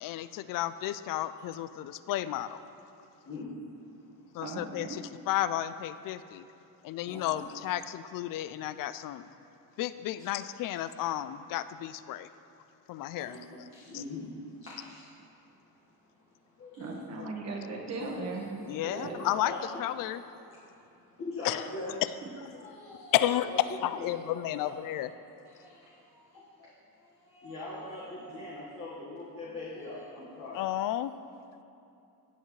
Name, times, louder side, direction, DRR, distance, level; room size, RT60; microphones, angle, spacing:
voice 1, 0.0-2.6 4.3-6.5 6.8-9.3 9.8-12.3 12.9-13.4 13.9-14.0 18.7-19.5 19.8-20.2 21.4-21.6 22.0-22.1 23.1-23.5 23.8-25.1 30.5-31.1, left 13 dB, 60° left, 13 dB, 0.5 m, -32 dB
voice 2, 3.2-4.3 7.1-7.2 13.3-15.1 15.9-17.0 18.0-20.1 20.5-22.0 22.5-23.3 23.9-24.8 25.4-26.7 27.0-30.6, left 2 dB, 40° left, -8 dB, 1.6 m, -43 dB
voice 3, 4.4-5.0 16.8-18.4 18.8-19.2, right 3 dB, 45° right, 0 dB, 1.5 m, -38 dB
18.0 x 8.1 x 3.2 m, 2.7 s
cardioid pair, 175°, 36 cm